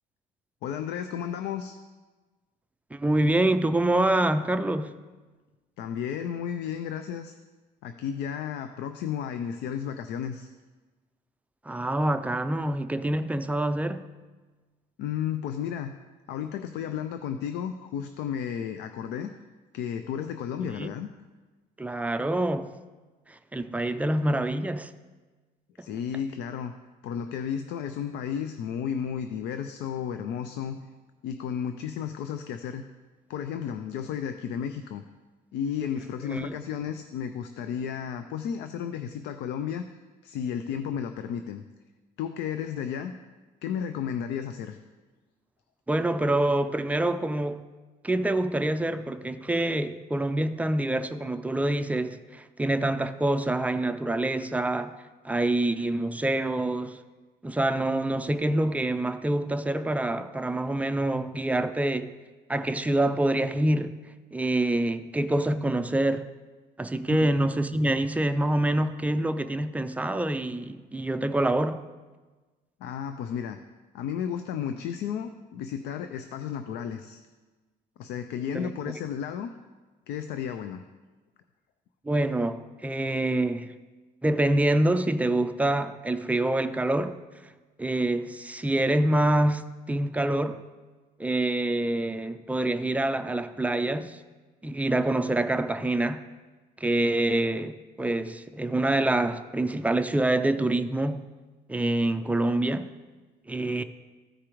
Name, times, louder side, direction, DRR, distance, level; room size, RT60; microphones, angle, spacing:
voice 1, 0.6-1.8 5.8-7.3 7.8-10.5 15.0-15.9 16.3-19.3 19.7-21.1 25.8-26.7 27.0-30.8 31.2-32.8 33.3-35.0 35.5-39.9 40.2-41.6 42.2-43.1 43.6-44.8 67.1-67.3 72.8-73.6 73.9-77.2 78.0-79.5 80.1-80.8, left 8 dB, 80° left, 0.5 m, -33 dB
voice 2, 2.9-4.9 11.7-14.1 20.8-20.9 21.8-22.7 23.3-24.9 36.3-36.5 45.9-47.7 48.0-54.9 55.2-57.0 57.4-62.1 62.5-64.0 64.3-66.2 66.8-71.8 78.5-78.7 82.0-83.7 84.2-87.2 87.8-90.6 91.2-94.2 94.6-96.2 96.8-101.3 101.7-102.9 103.5-103.8, right 1 dB, 10° right, 0.4 m, -26 dB
14.5 x 4.9 x 3.0 m
cardioid pair, 110°, 17 cm